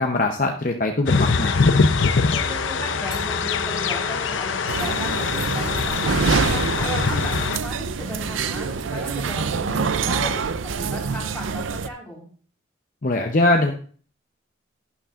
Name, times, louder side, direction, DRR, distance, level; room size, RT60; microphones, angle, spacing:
voice 1, 0.0-1.6 13.0-13.7, left 2 dB, 45° left, 3 dB, 0.7 m, -21 dB
sound 1, 1.1-7.6, left 4 dB, 80° left, 0.7 m, -22 dB
voice 2, 2.1-12.3, left 1 dB, 5° left, -4 dB, 3.7 m, -36 dB
Glass, 3.1-5.9, equal, 20° right, 2.3 m, -43 dB
sound 2, 4.7-11.9, right 5 dB, 85° right, 0.5 m, -25 dB
11.5 x 9.7 x 2.5 m, 0.44 s
head